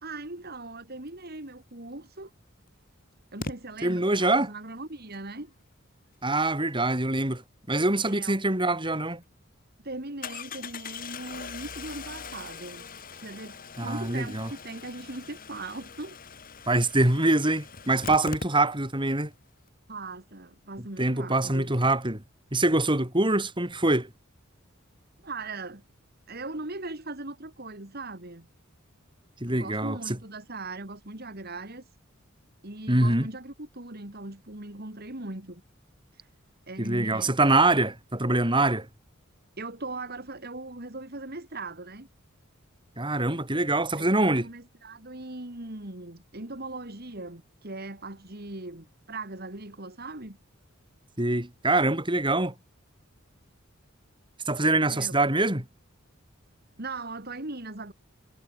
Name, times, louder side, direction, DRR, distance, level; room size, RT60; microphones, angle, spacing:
voice 1, 0.0-2.3 3.3-5.5 8.1-8.4 9.8-12.9 13.1-16.2 19.9-21.7 25.2-25.8 26.3-28.5 29.5-31.9 32.6-35.6 36.2-36.3 36.7-37.3 39.6-42.1 44.0-50.4 54.9-55.1 56.8-57.9, right 2 dB, 50° right, 3.1 m, -39 dB
Engine starting, 1.9-2.0 3.4-3.5 8.6-8.7 9.1-9.2 10.2-19.0 19.3-19.4 19.6-19.7, left 4 dB, 45° left, 3.1 m, -41 dB
voice 2, 3.8-4.5 6.2-7.4 7.7-9.2 13.8-14.5 16.7-19.3 21.0-22.2 22.5-24.1 29.4-30.2 32.9-33.3 36.8-38.9 43.0-44.5 51.2-52.5 54.5-55.7, right 2 dB, 25° right, 4.4 m, -24 dB
head